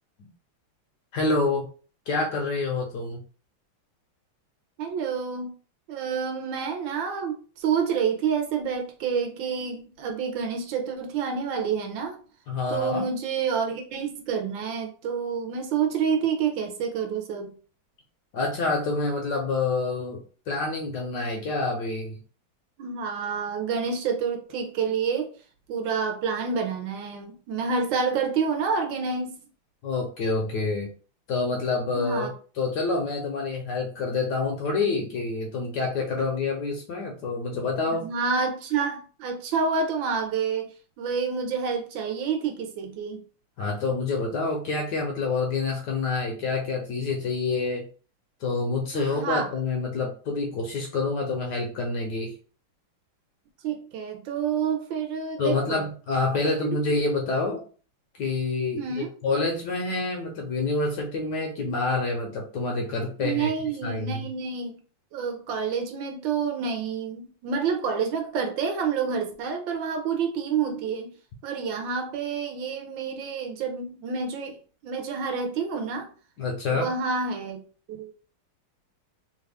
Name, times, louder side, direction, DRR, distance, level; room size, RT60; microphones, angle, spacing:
voice 1, 1.1-1.7 2.1-3.2 12.5-13.1 18.3-22.2 29.8-30.9 31.3-32.3 32.5-38.1 43.6-47.9 48.4-52.3 55.4-57.6 58.2-63.5 63.8-64.3 76.4-76.9, left 3 dB, 70° left, 1.1 m, -27 dB
voice 2, 4.8-5.5 5.9-12.2 12.7-17.5 22.8-25.3 25.7-29.3 31.9-32.3 37.9-40.7 41.0-43.2 48.9-49.5 53.6-55.8 56.4-56.8 58.8-59.1 63.2-64.8 65.1-71.1 71.4-74.6 74.8-76.1 76.7-77.6 77.9-78.1, right 6 dB, 75° right, 1.3 m, -28 dB
3.3 x 2.3 x 3.4 m
omnidirectional pair, 2.3 m